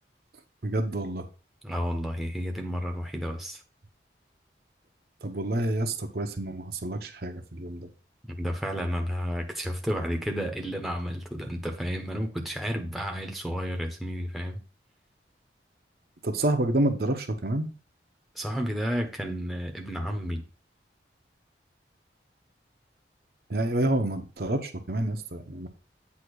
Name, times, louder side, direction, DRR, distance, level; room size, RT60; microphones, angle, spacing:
voice 1, 0.6-1.3 5.2-7.9 16.2-17.7 23.5-25.7, right 1 dB, 55° right, 0.9 m, -28 dB
voice 2, 1.6-3.6 8.3-14.6 18.3-20.4, equal, ahead, 0.9 m, -31 dB
8.3 x 2.8 x 6.2 m
head